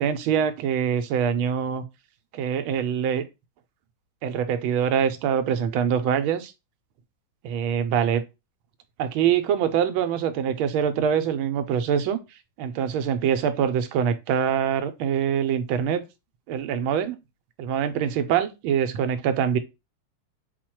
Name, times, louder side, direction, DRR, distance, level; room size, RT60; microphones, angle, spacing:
voice 1, 0.0-1.8 2.3-3.2 4.2-6.5 7.4-8.2 9.0-12.2 12.6-16.0 16.5-17.2 17.6-19.6, right 8 dB, 90° right, 1.4 m, -24 dB
4.3 x 2.3 x 4.4 m
omnidirectional pair, 2.2 m